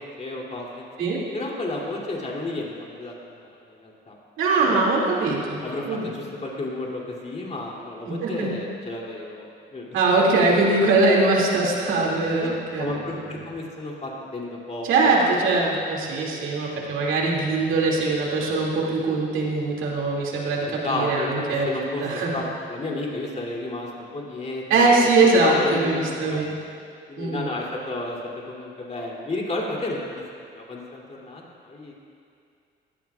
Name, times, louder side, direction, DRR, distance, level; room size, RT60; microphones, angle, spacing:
voice 1, 0.0-0.8 1.3-3.3 3.7-4.2 4.6-4.8 5.6-9.9 12.4-12.5 12.8-15.3 20.6-26.4 27.1-28.2 28.5-30.2 30.5-31.9, left 2 dB, 35° left, -3 dB, 2.9 m, -32 dB
voice 2, 4.4-5.6 5.9-6.1 8.1-8.5 9.9-13.0 14.8-21.7 22.0-22.3 24.7-26.5 27.2-27.5, right 3 dB, 85° right, -3 dB, 2.4 m, -21 dB
19.0 x 14.0 x 2.4 m, 2.4 s
cardioid pair, 90°, 20 cm